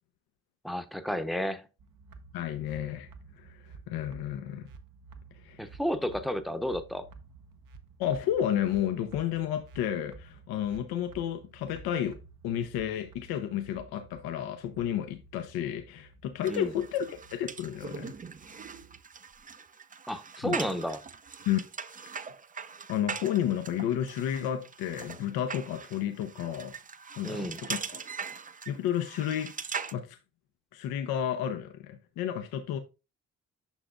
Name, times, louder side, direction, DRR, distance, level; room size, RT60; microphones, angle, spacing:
voice 1, 0.6-1.7 5.6-7.1 16.5-16.7 20.1-21.0 27.2-27.6, equal, ahead, 0.8 m, -32 dB
sound 1, 1.8-19.0, right 4 dB, 60° right, 1.0 m, -53 dB
voice 2, 2.3-3.1 3.4-4.7 5.4-5.7 8.0-12.2 12.4-18.1 20.4-20.6 21.5-21.6 22.9-26.8 27.2-28.0 28.7-29.5 29.9-30.2 30.7-32.8, left 10 dB, 80° left, 0.7 m, -31 dB
sound 2, 16.4-29.9, right 6 dB, 20° right, 0.5 m, -41 dB
7.1 x 5.9 x 2.4 m
hypercardioid pair, 45°, 37 cm